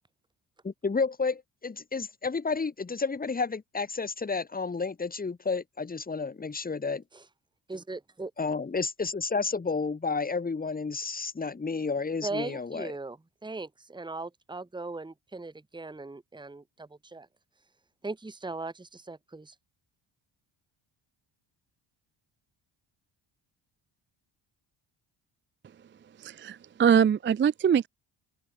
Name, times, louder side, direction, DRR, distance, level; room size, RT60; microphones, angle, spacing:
voice 1, 0.6-7.0 8.4-12.9, left 4 dB, 20° left, 1.2 m, -31 dB
voice 2, 7.7-8.3 12.2-17.3 18.0-19.5, right 3 dB, 10° right, 1.4 m, -39 dB
voice 3, 26.2-27.9, right 8 dB, 25° right, 0.3 m, -23 dB
open air
cardioid pair, 110°, 49 cm